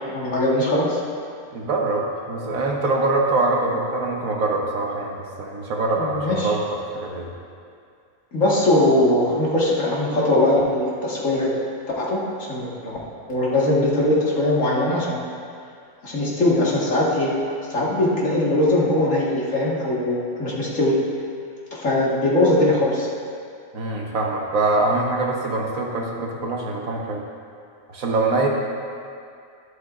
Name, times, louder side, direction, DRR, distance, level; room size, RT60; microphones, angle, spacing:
voice 1, 0.1-1.0 6.0-6.5 8.3-11.5 12.0-12.2 12.5-13.0 13.3-15.2 16.0-17.3 17.7-21.0 21.8-23.1, left 1 dB, 60° left, -6 dB, 2.0 m, -20 dB
voice 2, 1.5-6.6 6.9-7.3 23.7-27.2 27.9-28.5, right 2 dB, 65° right, 0 dB, 1.4 m, -24 dB
12.5 x 11.0 x 2.4 m, 2.3 s
omnidirectional pair, 1.6 m